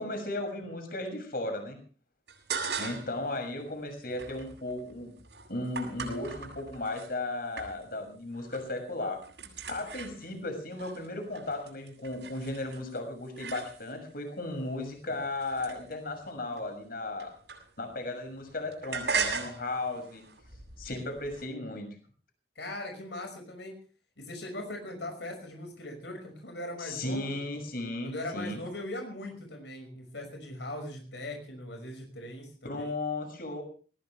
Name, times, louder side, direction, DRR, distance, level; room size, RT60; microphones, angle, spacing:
voice 1, 0.0-1.8 2.8-5.1 5.5-9.2 9.7-17.3 17.8-20.2 20.8-21.9 26.8-28.6 32.6-33.6, left 2 dB, 55° left, 6 dB, 6.5 m, -35 dB
sound 1, 2.3-3.2 3.6-7.1 7.6-8.1 8.3-8.8 9.0-14.1 14.7-18.0 18.3-21.5, right 5 dB, 75° right, 7.6 m, -39 dB
voice 2, 22.6-23.8 24.2-27.4 28.0-32.9, left 1 dB, 80° left, 4 dB, 5.7 m, -40 dB
21.0 x 19.5 x 3.4 m, 0.40 s
head